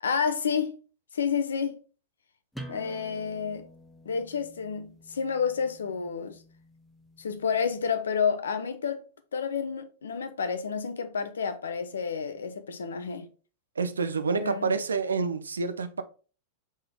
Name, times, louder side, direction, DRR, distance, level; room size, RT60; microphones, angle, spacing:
voice 1, 0.0-0.8 1.1-1.8 2.7-3.7 4.0-6.4 7.2-9.0 9.3-13.3 14.4-14.7, left 6 dB, 70° left, 0.6 m, -30 dB
sound 1, 2.5-7.9, equal, 5° left, 0.8 m, -49 dB
voice 2, 13.8-16.0, right 4 dB, 75° right, 0.4 m, -28 dB
4.1 x 3.8 x 3.4 m
figure-of-eight pair, 90°, 0 cm